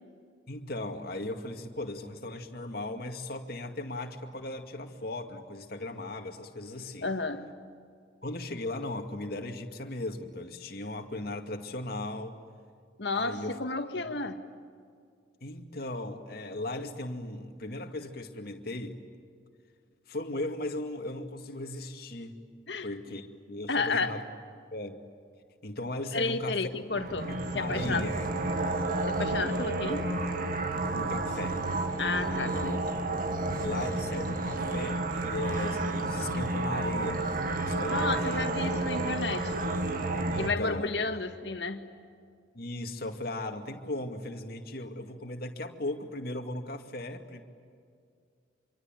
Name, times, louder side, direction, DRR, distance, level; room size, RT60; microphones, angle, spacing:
voice 1, 0.5-7.1 8.2-12.4 13.1-13.6 13.9-14.1 15.4-19.0 20.1-22.4 22.8-24.2 24.7-25.0 25.6-26.7 27.3-28.1 30.9-31.6 33.6-37.2 37.6-38.4 38.7-39.1 40.3-40.9 42.5-47.4, left 2 dB, 55° left, 4 dB, 2.3 m, -37 dB
voice 2, 7.0-7.4 13.0-14.4 22.7-22.9 23.7-24.2 26.1-28.1 29.1-30.1 32.0-32.8 37.9-39.6 40.4-41.8, left 3 dB, 75° left, 7 dB, 1.9 m, -32 dB
sound 1, 26.9-40.5, right 2 dB, 50° right, 2.1 m, -31 dB
26.5 x 24.0 x 9.1 m, 2.2 s
head